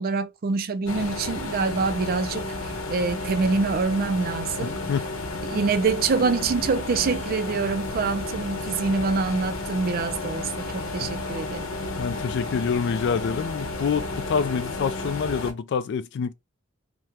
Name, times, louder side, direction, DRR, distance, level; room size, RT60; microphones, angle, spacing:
voice 1, 0.0-2.5 2.9-4.8 5.5-11.7, right 4 dB, 45° right, 0.4 m, -25 dB
sound 1, 0.8-15.5, left 2 dB, 75° left, 0.8 m, -32 dB
voice 2, 4.6-5.1 11.0-11.1 12.0-16.3, left 6 dB, 55° left, 0.3 m, -27 dB
3.5 x 2.1 x 2.9 m
head